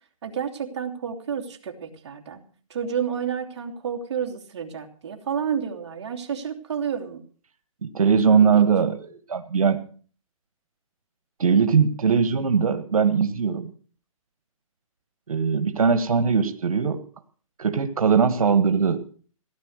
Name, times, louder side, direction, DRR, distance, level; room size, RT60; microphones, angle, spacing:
voice 1, 0.2-2.4 2.7-7.2 8.4-8.7, right 7 dB, 50° right, 3 dB, 2.9 m, -30 dB
voice 2, 7.8-9.8 11.4-13.7 15.3-17.0 17.6-19.0, right 6 dB, 90° right, 8 dB, 1.7 m, -20 dB
17.5 x 10.5 x 6.5 m, 0.43 s
hypercardioid pair, 155°, 18 cm